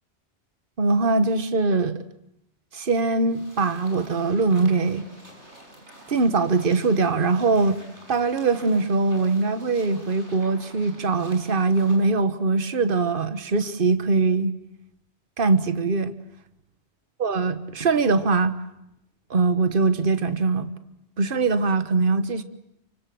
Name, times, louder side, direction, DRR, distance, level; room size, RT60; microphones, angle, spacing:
voice 1, 0.8-2.0 2.7-5.0 6.1-7.8 8.1-14.5 15.4-16.1 17.2-18.5 19.3-20.7 21.2-22.4, right 3 dB, 50° right, 11 dB, 1.5 m, -22 dB
sound 1, 3.3-12.1, right 1 dB, 85° right, 6.7 m, -48 dB
29.5 x 24.5 x 7.8 m, 0.81 s
omnidirectional pair, 1.2 m